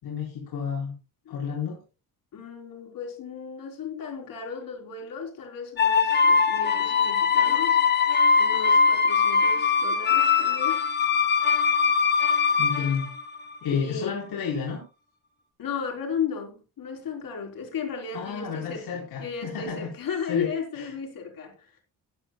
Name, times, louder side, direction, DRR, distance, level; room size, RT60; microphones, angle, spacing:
voice 1, 0.0-0.9 1.3-1.8 12.6-13.1 13.6-14.8 18.1-19.9 20.2-20.5 20.7-20.9, left 6 dB, 90° left, 4.2 m, -31 dB
voice 2, 2.3-8.1 8.4-10.8 13.7-14.2 15.6-18.9 19.2-21.8, left 6 dB, 65° left, 3.8 m, -35 dB
sound 1, 5.8-13.7, left 5 dB, 30° left, 1.1 m, -22 dB
17.5 x 10.5 x 2.3 m
wide cardioid pair, 175°, 37 cm